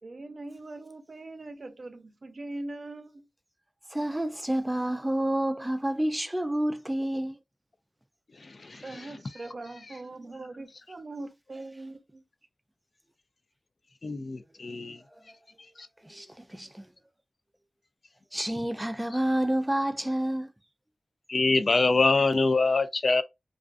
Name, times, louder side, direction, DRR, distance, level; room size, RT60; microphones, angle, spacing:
voice 1, 0.0-3.3 8.8-12.2, right 2 dB, 60° right, 0.5 m, -41 dB
voice 2, 3.9-7.4 16.0-16.9 18.3-20.5, right 1 dB, 10° right, 0.4 m, -29 dB
voice 3, 8.4-8.8 14.0-15.0 21.3-23.2, left 3 dB, 60° left, 0.3 m, -24 dB
2.4 x 2.4 x 2.4 m
wide cardioid pair, 75°, 0 cm